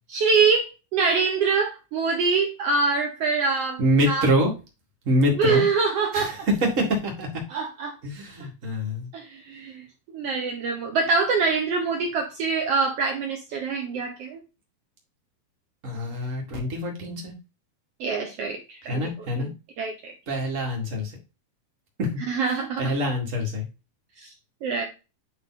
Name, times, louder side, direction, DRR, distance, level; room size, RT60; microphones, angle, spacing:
voice 1, 0.1-4.2 5.3-6.5 7.5-8.0 9.1-9.8 10.1-14.4 18.0-19.0 19.8-20.1 22.3-22.9 24.2-24.3 24.6-24.8, right 4 dB, 75° right, 3 dB, 1.4 m, -24 dB
voice 2, 3.8-4.5 5.0-5.6 6.1-7.3 8.0-9.1 15.8-17.3 18.8-19.5 20.3-21.1 22.0-22.2 22.8-23.7, equal, 30° right, 1 dB, 1.7 m, -25 dB
8.4 x 3.6 x 4.1 m, 0.28 s
omnidirectional pair, 3.9 m